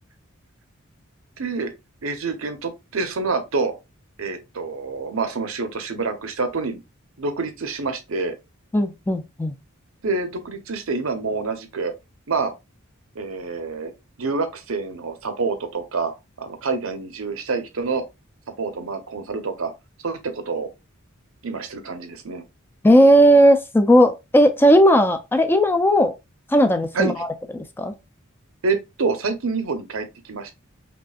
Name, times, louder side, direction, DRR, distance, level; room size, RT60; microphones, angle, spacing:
voice 1, 1.4-1.7 2.0-3.7 4.2-6.8 7.2-8.3 10.0-11.9 12.3-12.5 13.1-13.9 14.2-16.1 16.4-18.0 18.6-19.7 20.0-20.7 21.4-22.4 26.9-27.1 28.6-30.5, right 4 dB, 70° right, 0.8 m, -27 dB
voice 2, 8.7-9.5 22.8-26.1 26.5-27.3 27.8-27.9, equal, 10° left, 0.4 m, -16 dB
5.3 x 2.5 x 2.3 m
head